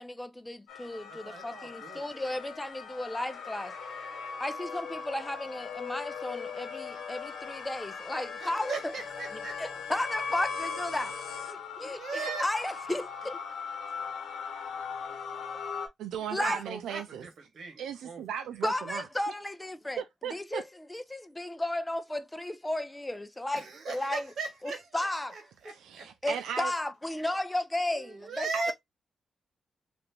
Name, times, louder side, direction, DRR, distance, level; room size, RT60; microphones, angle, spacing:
voice 1, 0.0-3.7 4.4-8.7 9.6-11.1 11.5-13.4 16.3-16.6 18.6-20.0 20.3-20.6 20.9-23.6 23.9-24.2 24.9-25.4 26.2-28.7, left 1 dB, 15° left, 0.5 m, -34 dB
sound 1, 0.7-15.9, left 6 dB, 80° left, 1.0 m, -39 dB
voice 2, 1.1-2.1 8.4-9.8 11.8-12.7 13.9-14.0 16.3-18.7 23.5-26.1 27.9-28.7, right 4 dB, 70° right, 1.1 m, -39 dB
voice 3, 16.0-17.2 17.8-19.1 20.0-20.6 25.8-26.7 28.5-28.7, right 8 dB, 90° right, 0.3 m, -36 dB
2.8 x 2.5 x 3.3 m
cardioid pair, 60°, 0 cm